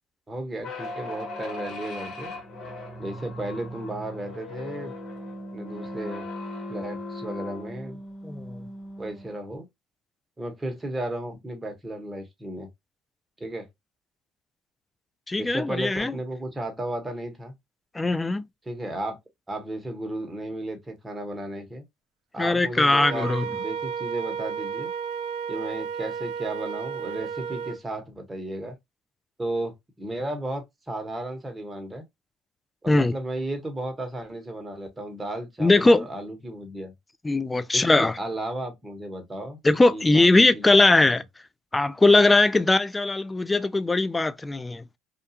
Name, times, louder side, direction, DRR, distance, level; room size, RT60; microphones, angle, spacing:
voice 1, 0.3-2.3 3.0-4.9 5.5-6.2 6.7-8.0 9.0-9.7 10.4-12.7 13.4-13.7 15.4-17.5 18.7-19.2 19.5-21.8 22.3-24.9 25.5-28.7 29.4-32.0 32.8-36.9 37.7-39.6 39.9-40.3 40.5-40.8, right 1 dB, 15° right, 1.0 m, -34 dB
sound 1, 0.6-9.4, left 1 dB, 55° left, 1.2 m, -38 dB
voice 2, 8.2-8.6 15.3-16.1 17.9-18.4 22.4-23.5 32.9-33.1 35.6-36.1 37.2-38.2 39.6-41.2 41.7-44.8, left 2 dB, 15° left, 0.3 m, -20 dB
Wind instrument woodwind instrument, 23.0-27.8, right 7 dB, 80° right, 0.4 m, -32 dB
2.4 x 2.3 x 2.8 m
supercardioid pair, 80°, 0 cm